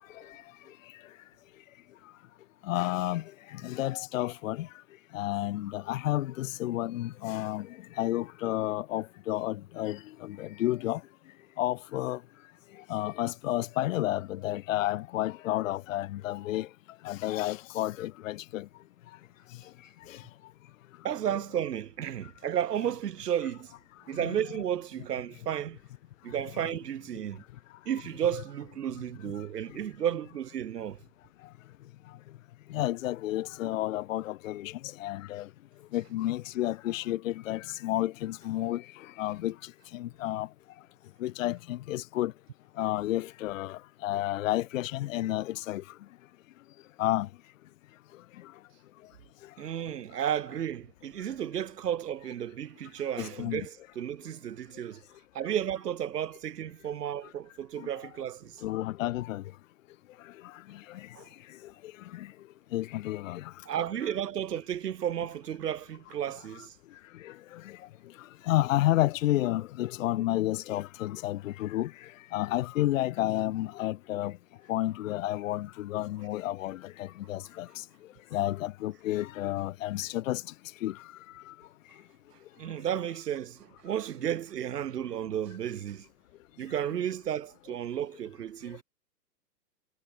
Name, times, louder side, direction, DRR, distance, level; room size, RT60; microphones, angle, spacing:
voice 1, 2.7-3.2 3.6-4.7 5.1-7.7 8.0-11.0 11.6-12.2 12.9-16.7 17.0-18.6 32.7-34.7 35.0-35.4 35.9-38.8 39.2-39.5 39.9-40.5 41.2-42.3 42.8-45.8 47.0-47.3 53.2-53.6 58.6-59.4 62.7-63.4 68.5-71.9 72.3-74.3 74.7-77.7 78.3-80.4 80.8-80.9, left 15 dB, 55° left, 1.0 m, -30 dB
voice 2, 21.0-23.7 24.1-25.8 26.2-27.4 27.9-31.0 49.6-55.0 55.3-58.6 61.1-61.3 63.7-66.7 82.6-86.1 86.6-88.8, right 10 dB, 75° right, 1.8 m, -33 dB
hypercardioid pair, 130°, 48 cm